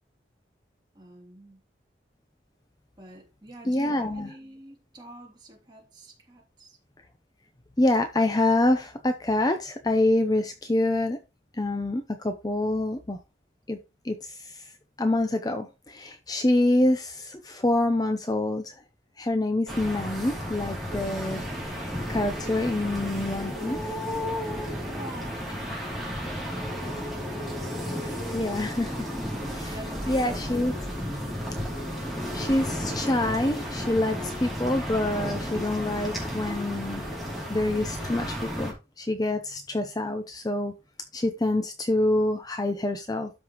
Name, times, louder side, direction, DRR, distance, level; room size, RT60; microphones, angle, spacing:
voice 1, 0.9-1.6 3.0-6.8 24.9-25.7 28.0-28.6 29.7-30.9, right 1 dB, 25° right, 2.9 m, -46 dB
voice 2, 3.7-4.3 7.8-11.2 11.6-13.2 13.7-13.8 14.0-14.7 15.0-18.7 19.2-23.8 28.0-28.9 29.5-29.7 30.1-30.7 32.3-37.0 37.5-40.7 41.1-43.3, left 1 dB, 20° left, 0.6 m, -26 dB
sound 1, 19.7-38.7, equal, ahead, 2.8 m, -33 dB
12.5 x 5.4 x 3.0 m
head